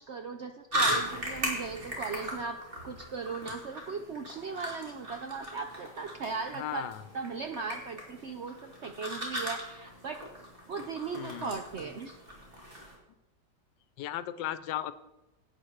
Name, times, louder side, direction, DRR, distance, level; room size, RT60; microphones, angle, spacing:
voice 1, 0.0-2.6 2.8-6.8 7.1-10.2 10.7-12.2, right 4 dB, 65° right, 6 dB, 0.6 m, -38 dB
sound 1, 0.7-13.0, equal, 30° right, 2.6 m, -37 dB
voice 2, 6.6-7.0 11.1-11.5 14.0-14.9, left 12 dB, 90° left, 14 dB, 1.3 m, -36 dB
11.0 x 8.6 x 4.5 m, 0.97 s
omnidirectional pair, 1.9 m